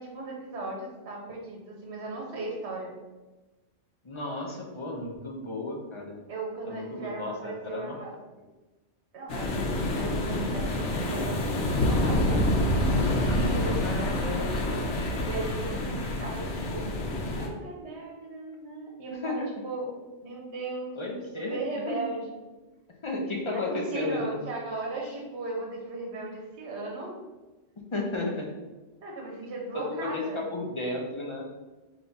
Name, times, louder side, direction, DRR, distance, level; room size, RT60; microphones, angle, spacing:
voice 1, 0.0-3.0 6.3-8.1 9.1-12.4 15.3-17.0 17.3-19.9 20.2-21.0 21.3-22.3 23.5-27.2 29.0-30.4, right 2 dB, 70° right, -1 dB, 1.2 m, -37 dB
voice 2, 4.0-6.2 6.6-8.0 13.3-15.3 19.1-19.5 21.0-22.0 23.0-24.4 25.0-25.2 27.9-28.5 29.7-31.5, left 2 dB, 35° left, -1 dB, 0.5 m, -34 dB
sound 1, 9.3-17.5, left 1 dB, 85° left, 1.0 m, -27 dB
3.6 x 2.9 x 4.0 m, 1.2 s
omnidirectional pair, 1.2 m